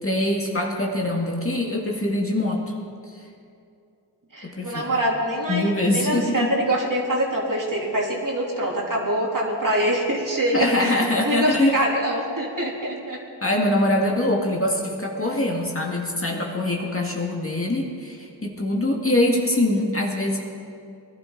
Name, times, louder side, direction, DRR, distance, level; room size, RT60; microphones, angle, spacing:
voice 1, 0.0-2.7 4.4-4.9 5.5-6.4 10.5-11.8 13.4-20.4, left 1 dB, 30° left, -1 dB, 2.1 m, -23 dB
voice 2, 4.3-13.2, right 1 dB, 45° right, -3 dB, 3.2 m, -24 dB
21.0 x 12.0 x 4.0 m, 2.5 s
cardioid pair, 50°, 47 cm